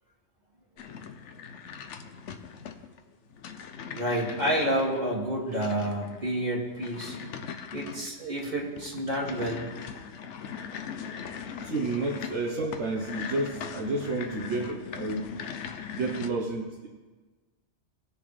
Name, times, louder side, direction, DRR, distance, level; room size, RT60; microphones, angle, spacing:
sound 1, 0.8-16.3, left 6 dB, 85° left, 1.0 m, -40 dB
voice 1, 3.9-7.2 7.7-9.7, right 1 dB, 40° right, -5 dB, 2.6 m, -29 dB
voice 2, 11.6-15.3 15.9-16.9, right 2 dB, 75° right, -2 dB, 1.5 m, -30 dB
19.0 x 6.7 x 3.4 m, 1.3 s
omnidirectional pair, 1.2 m